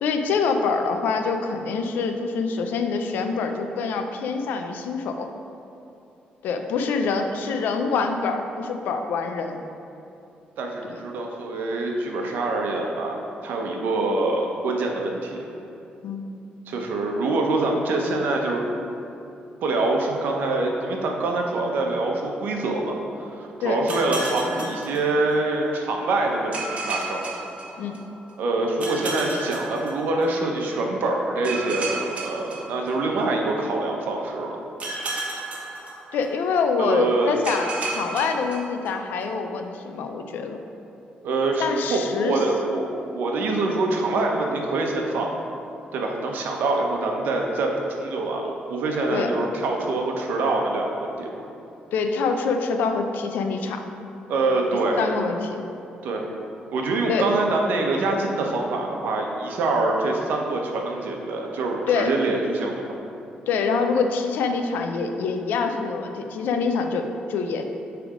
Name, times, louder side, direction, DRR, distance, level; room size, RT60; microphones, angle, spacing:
voice 1, 0.0-5.3 6.4-9.6 10.9-11.0 16.0-16.2 23.6-23.8 27.8-28.0 36.1-40.6 41.6-42.4 49.1-49.3 51.9-53.9 55.0-55.7 57.1-57.3 61.9-62.1 63.5-67.6, left 5 dB, 85° left, 6 dB, 0.5 m, -25 dB
voice 2, 7.2-7.7 10.6-13.2 13.4-15.5 16.7-18.6 19.6-27.2 28.4-34.6 36.8-37.3 41.2-45.3 45.9-51.4 54.3-55.1 56.0-56.2 56.7-63.0, right 2 dB, 80° right, 1 dB, 0.9 m, -25 dB
sound 1, 23.9-25.6 26.5-28.3 28.8-30.5 31.4-33.4 34.8-36.6 37.4-39.3, right 3 dB, 45° right, 1.2 m, -33 dB
8.6 x 3.5 x 4.9 m, 2.7 s
cardioid pair, 110°, 3 cm